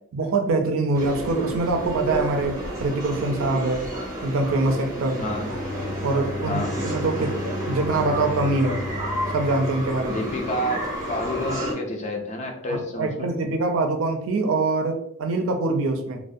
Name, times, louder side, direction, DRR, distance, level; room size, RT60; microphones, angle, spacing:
voice 1, 0.1-3.9 4.2-5.2 6.0-7.4 7.7-8.8 9.3-10.2 12.7-16.2, right 3 dB, 70° right, 5 dB, 0.4 m, -24 dB
sound 1, 0.9-11.7, right 1 dB, 15° right, 0.6 m, -31 dB
Bowed string instrument, 5.1-11.0, left 2 dB, 85° left, 0.6 m, -34 dB
voice 2, 10.0-13.3, left 1 dB, 35° left, 3 dB, 0.3 m, -29 dB
2.4 x 2.1 x 2.5 m, 0.74 s
head